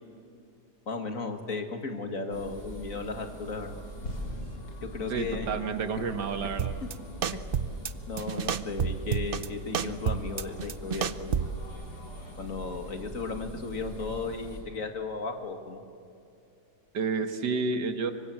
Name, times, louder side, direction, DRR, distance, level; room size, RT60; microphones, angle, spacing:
voice 1, 0.9-3.7 4.8-5.6 8.1-11.5 12.4-15.8, left 4 dB, 55° left, 5 dB, 2.3 m, -35 dB
sound 1, 2.3-14.6, left 1 dB, 70° left, 5.4 m, -42 dB
voice 2, 5.1-6.8 16.9-18.1, right 4 dB, 85° right, 8 dB, 2.1 m, -30 dB
sound 2, 6.6-6.9 7.2-7.9 8.2-9.5 9.7-11.6, right 7 dB, 50° right, 0.7 m, -29 dB
26.0 x 23.5 x 7.7 m, 2.6 s
omnidirectional pair, 1.8 m